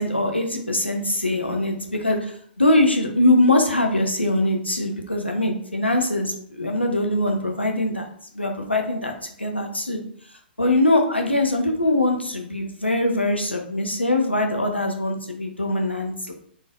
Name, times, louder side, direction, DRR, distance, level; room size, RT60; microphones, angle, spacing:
voice 1, 0.0-8.1 8.3-9.1 9.4-10.0 10.6-16.3, left 1 dB, 85° left, 3 dB, 0.7 m, -22 dB
4.1 x 3.3 x 2.5 m, 0.63 s
figure-of-eight pair, 120°, 6 cm